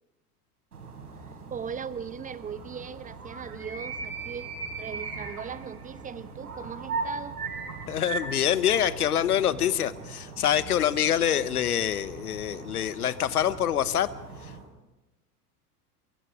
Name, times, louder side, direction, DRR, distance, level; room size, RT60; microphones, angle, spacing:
sound 1, 0.7-14.7, right 4 dB, 70° right, 4.9 m, -39 dB
voice 1, 1.5-4.5 4.8-7.4, right 7 dB, 15° right, 16 dB, 0.7 m, -38 dB
voice 2, 7.9-14.1 14.4-14.5, left 10 dB, 75° left, 17 dB, 1.0 m, -25 dB
24.0 x 23.5 x 5.0 m, 1.0 s
figure-of-eight pair, 75°, 46 cm